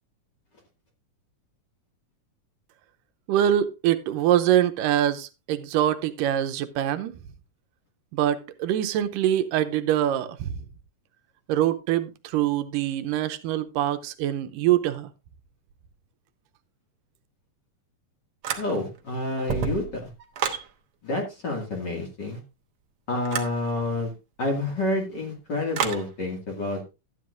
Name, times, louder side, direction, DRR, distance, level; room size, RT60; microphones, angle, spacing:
voice 1, 3.3-7.1 8.1-10.6 11.5-15.1, right 11 dB, 85° right, 2.4 m, -24 dB
sound 1, 18.4-19.0 19.4-20.7 23.3-23.6 25.7-26.1, right 7 dB, 60° right, 1.5 m, -29 dB
voice 2, 18.6-20.1 21.0-22.4 23.1-24.1 24.4-26.8, left 2 dB, 35° left, 2.4 m, -28 dB
12.5 x 9.6 x 2.5 m
omnidirectional pair, 3.8 m